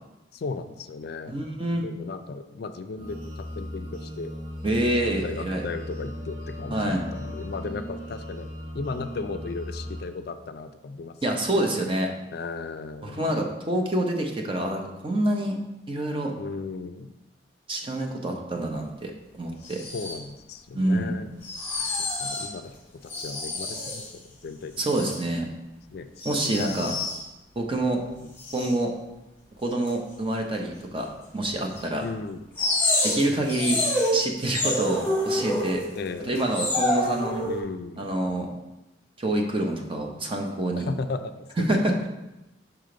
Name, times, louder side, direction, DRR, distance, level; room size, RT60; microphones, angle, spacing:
voice 1, 0.3-1.3 1.7-4.3 5.2-8.5 8.7-11.5 12.3-13.4 16.4-17.1 19.6-21.3 21.8-25.0 25.9-27.0 28.1-28.4 32.0-32.4 33.3-33.5 35.9-36.3 37.4-38.1 40.8-41.6, left 4 dB, 60° left, 9 dB, 0.4 m, -36 dB
voice 2, 1.3-1.8 4.6-5.6 6.7-7.0 11.2-12.1 13.0-15.6 15.9-16.3 17.7-19.8 20.7-21.1 24.8-25.5 26.2-27.0 27.6-28.0 28.5-28.9 29.6-31.1 31.3-32.0 33.0-33.8 34.1-35.8 36.2-37.4 38.0-38.5 39.2-40.9 41.6-42.1, right 1 dB, 30° right, 2 dB, 0.8 m, -26 dB
sound 1, 3.0-10.0, equal, 80° right, 2.3 m, -37 dB
sound 2, 19.6-20.2 21.4-22.5 23.1-24.1 24.8-25.2 26.2-27.2 28.4-28.7 29.9-30.0 31.3-31.4 31.8-31.9 32.6-36.0 36.4-37.6, left 1 dB, 15° left, 1.2 m, -28 dB
5.9 x 5.0 x 3.8 m, 0.97 s
head